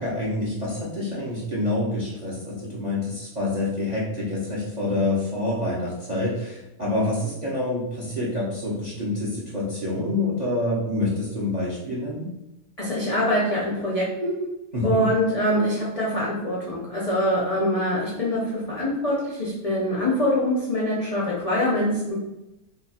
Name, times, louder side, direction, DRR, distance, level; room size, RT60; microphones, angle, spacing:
voice 1, 0.0-12.3 14.7-15.1, left 2 dB, 40° right, -7 dB, 0.6 m, -27 dB
voice 2, 12.8-14.4 14.8-22.2, left 1 dB, 50° left, -7 dB, 0.4 m, -24 dB
2.9 x 2.4 x 4.1 m, 0.93 s
omnidirectional pair, 1.7 m